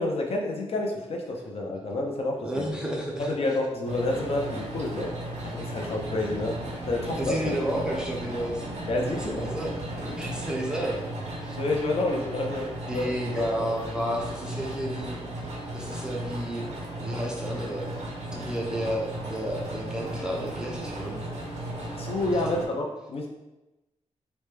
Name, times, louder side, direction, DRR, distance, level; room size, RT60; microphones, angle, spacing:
voice 1, 0.0-2.7 3.2-5.1 5.4-6.6 6.9-7.4 8.9-9.6 11.6-13.1 13.6-13.7 21.9-23.3, left 2 dB, 60° left, 1 dB, 0.5 m, -29 dB
voice 2, 2.4-3.4 5.6-5.8 7.2-8.7 9.2-11.0 11.4-11.6 12.9-15.5 15.7-16.7 17.0-17.9 18.2-21.2 22.3-22.4, equal, 5° right, -2 dB, 0.4 m, -32 dB
sound 1, 3.8-22.7, right 1 dB, 80° right, 0.7 m, -36 dB
3.0 x 2.1 x 3.2 m, 1.0 s
wide cardioid pair, 160°, 11 cm